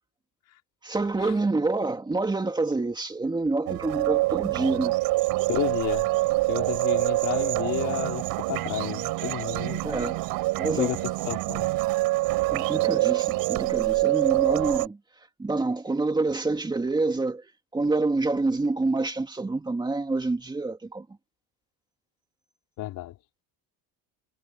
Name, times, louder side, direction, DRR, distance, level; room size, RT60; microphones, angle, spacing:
voice 1, 0.8-5.0 9.8-10.2 10.6-11.0 11.5-11.6 12.5-15.0 15.4-17.4 17.7-21.1, right 3 dB, 10° right, 2.5 m, -27 dB
sound 1, 3.7-14.9, right 19 dB, 85° right, 4.1 m, -26 dB
voice 2, 5.5-6.1 6.5-10.0 10.8-11.6 22.8-23.1, left 15 dB, 65° left, 4.8 m, -32 dB
cardioid pair, 165°, 34 cm